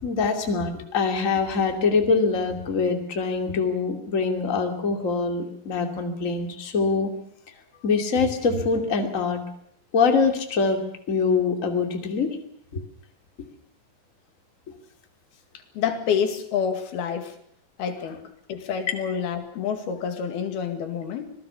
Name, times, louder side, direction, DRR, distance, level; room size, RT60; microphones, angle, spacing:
voice 1, 0.0-7.1 7.8-9.4 9.9-12.3 12.7-12.8, left 4 dB, 25° left, 4 dB, 2.5 m, -24 dB
voice 2, 15.8-17.4 17.8-18.2 18.5-21.3, left 7 dB, 85° left, 6 dB, 4.1 m, -28 dB
25.5 x 18.5 x 7.0 m, 0.67 s
omnidirectional pair, 4.3 m